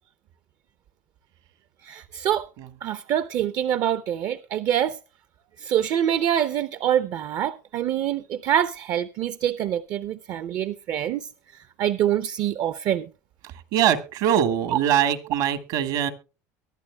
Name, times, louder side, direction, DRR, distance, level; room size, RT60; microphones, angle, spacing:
voice 1, 1.8-2.5 2.8-5.0 5.6-13.1 14.7-14.8, right 10 dB, 55° right, 0.5 m, -25 dB
voice 2, 13.7-16.1, right 10 dB, 70° right, 1.5 m, -22 dB
23.0 x 11.5 x 2.2 m
supercardioid pair, 90°, 8 cm